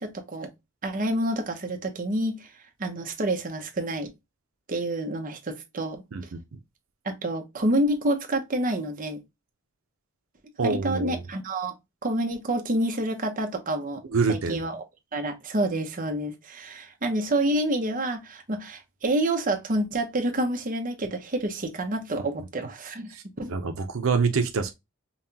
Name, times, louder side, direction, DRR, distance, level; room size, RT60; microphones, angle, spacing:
voice 1, 0.0-0.5 0.8-2.5 2.8-4.1 4.7-6.0 7.0-9.2 10.6-11.8 12.0-14.0 14.3-14.8 15.1-23.1 23.4-23.5, right 1 dB, 40° right, 0.9 m, -28 dB
voice 2, 10.6-11.2 14.1-14.6 23.1-23.2 23.5-24.7, right 4 dB, 85° right, 0.6 m, -26 dB
5.5 x 2.3 x 2.7 m
head